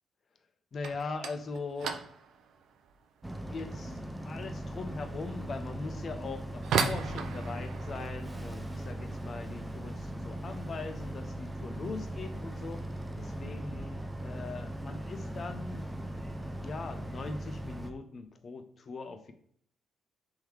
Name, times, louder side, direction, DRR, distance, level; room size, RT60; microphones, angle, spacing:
voice 1, 0.7-2.0 3.5-4.0 4.3-12.9 13.2-15.8 16.6-19.3, left 4 dB, 45° left, 7 dB, 0.5 m, -41 dB
sound 1, 0.7-11.5 11.7-12.3 12.6-12.9 13.2-13.3 14.0-14.1 15.0-15.3 15.6-16.1, right 6 dB, 75° right, 0.5 m, -39 dB
Boat Water vehicle, 3.2-17.9, right 1 dB, 10° right, 0.5 m, -39 dB
3.7 x 3.1 x 4.7 m, 0.63 s
cardioid pair, 90°, 0 cm